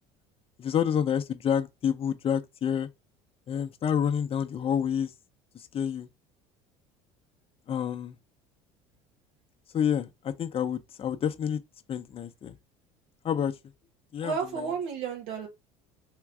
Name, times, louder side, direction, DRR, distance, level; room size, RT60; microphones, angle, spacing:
voice 1, 0.6-2.9 3.5-5.1 5.7-6.1 7.7-8.2 9.7-11.6 11.9-12.6 13.2-13.5 14.1-14.3, left 8 dB, 40° left, 0.7 m, -28 dB
voice 2, 14.2-15.5, right 6 dB, 75° right, 1.7 m, -32 dB
3.7 x 3.0 x 4.7 m
supercardioid pair, 85°, 16 cm